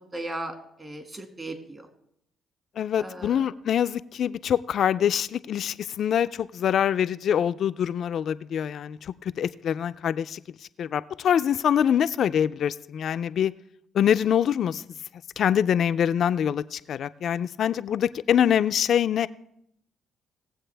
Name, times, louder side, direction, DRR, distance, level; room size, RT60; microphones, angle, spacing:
voice 1, 0.1-1.9 3.0-3.5, right 1 dB, 30° right, 5 dB, 2.0 m, -37 dB
voice 2, 2.8-9.0 9.4-10.4 10.8-13.5 13.9-14.8 15.4-19.3, left 9 dB, 65° left, 14 dB, 0.4 m, -24 dB
19.0 x 7.8 x 3.4 m, 0.75 s
cardioid pair, 90°, 0 cm